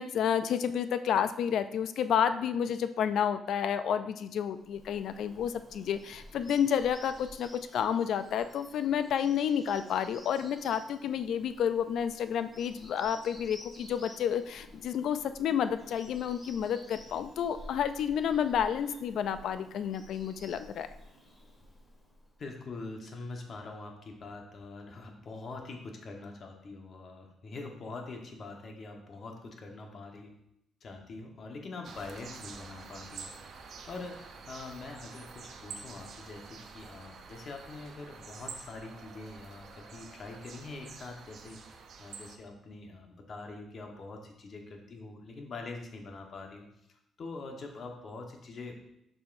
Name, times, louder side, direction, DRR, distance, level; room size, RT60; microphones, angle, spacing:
voice 1, 0.0-20.9, left 8 dB, 75° left, 11 dB, 0.4 m, -30 dB
Bird vocalization bird call bird song, 4.5-22.5, equal, 25° left, 2.1 m, -53 dB
voice 2, 22.4-30.3 30.8-33.3 33.6-41.6 42.0-46.7 47.2-48.7, left 3 dB, 50° left, 2 dB, 1.2 m, -44 dB
sound 1, 31.8-42.4, right 5 dB, 65° right, 0.7 m, -48 dB
7.0 x 5.6 x 2.6 m, 0.80 s
cardioid pair, 90°, 0 cm